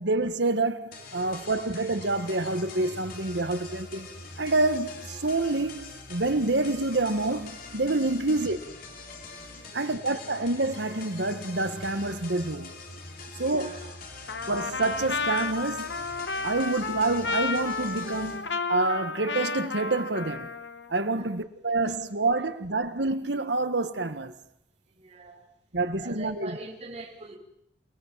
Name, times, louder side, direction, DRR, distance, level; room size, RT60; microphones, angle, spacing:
voice 1, 0.0-4.1 4.4-8.6 9.7-12.7 13.4-13.7 14.5-16.0 16.4-20.5 20.9-24.3 25.7-26.5, right 2 dB, 70° right, 1.5 m, -27 dB
sound 1, 0.9-18.4, left 3 dB, 55° left, 4.2 m, -43 dB
voice 2, 9.6-10.0 13.3-13.9 21.2-21.3 21.9-22.0 24.9-25.5 26.0-27.4, right 2 dB, 40° right, 5.7 m, -43 dB
Trumpet, 14.3-20.9, left 4 dB, 75° left, 1.4 m, -32 dB
28.5 x 19.5 x 7.5 m
head